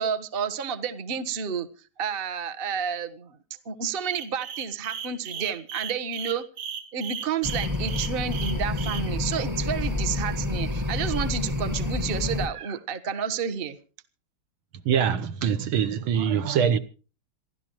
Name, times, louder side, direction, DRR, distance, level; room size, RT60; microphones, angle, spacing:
voice 1, 0.0-1.7 2.0-3.4 3.6-6.4 6.9-13.8, right 7 dB, 35° right, 1.1 m, -30 dB
sound 1, 4.0-9.0, right 7 dB, 50° right, 2.6 m, -36 dB
sound 2, 7.4-12.5, left 2 dB, 10° right, 1.0 m, -28 dB
voice 2, 14.9-16.8, right 8 dB, 75° right, 1.8 m, -23 dB
27.5 x 12.0 x 3.0 m
omnidirectional pair, 2.3 m